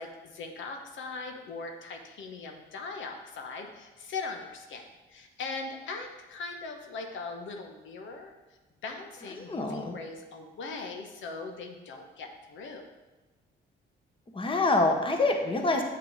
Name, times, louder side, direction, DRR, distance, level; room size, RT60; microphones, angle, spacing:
voice 1, 0.0-8.3 8.8-12.8, left 4 dB, 75° left, 3 dB, 1.2 m, -40 dB
voice 2, 9.4-10.0 14.3-15.8, left 2 dB, 25° left, 3 dB, 1.3 m, -26 dB
8.3 x 5.8 x 5.1 m, 1.1 s
cardioid pair, 90°, 20 cm